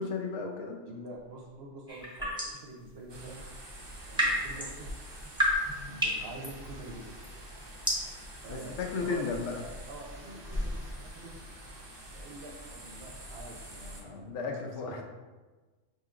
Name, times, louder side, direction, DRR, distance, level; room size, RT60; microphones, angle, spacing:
voice 1, 0.0-0.8 8.5-9.6 14.0-15.0, left 4 dB, 75° left, 2 dB, 0.9 m, -34 dB
voice 2, 0.9-3.4 4.1-4.9 5.8-7.2 8.4-9.3 9.9-11.3 12.1-14.9, right 2 dB, 60° right, 0 dB, 0.8 m, -46 dB
sound 1, 1.1-1.9 2.7-3.6 7.2-7.3 9.3-9.4 10.1-11.2, left 1 dB, 30° left, 0.9 m, -41 dB
sound 2, 1.9-2.7 3.8-11.5, equal, 5° right, 0.7 m, -34 dB
sound 3, 3.1-14.0, right 1 dB, 40° right, 0.3 m, -46 dB
5.6 x 2.8 x 2.4 m, 1.3 s
omnidirectional pair, 1.3 m